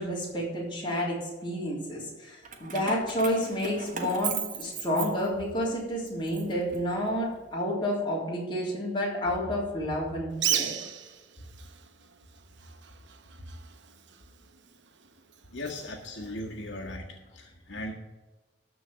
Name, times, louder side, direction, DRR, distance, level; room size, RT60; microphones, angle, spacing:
voice 1, 0.0-10.7, equal, 25° left, -4 dB, 3.4 m, -30 dB
Keys jangling, 2.4-5.6 6.1-7.3, right 7 dB, 45° right, 1.2 m, -37 dB
Bird, 10.3-17.0, right 9 dB, 75° right, 0.9 m, -37 dB
voice 2, 15.5-17.9, left 1 dB, 80° left, 0 dB, 1.6 m, -38 dB
13.0 x 4.7 x 7.6 m, 1.2 s
head